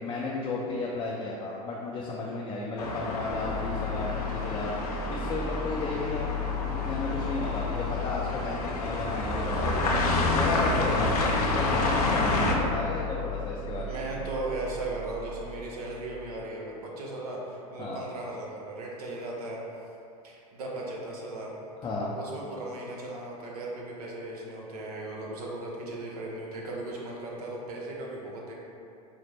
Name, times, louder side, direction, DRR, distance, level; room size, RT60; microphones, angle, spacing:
voice 1, 0.0-4.7 5.1-6.3 6.7-9.9 10.3-14.0 17.8-18.0 21.8-22.1, left 2 dB, 25° left, -4 dB, 0.4 m, -33 dB
sound 1, 2.8-12.6, left 2 dB, 90° left, 0.5 m, -29 dB
sound 2, 3.3-16.4, left 5 dB, 40° right, 0.8 m, -35 dB
voice 2, 13.9-19.6 20.2-21.6 22.2-28.6, right 2 dB, 80° right, -3 dB, 0.8 m, -37 dB
5.0 x 2.1 x 3.2 m, 2.6 s
hypercardioid pair, 100°, 19 cm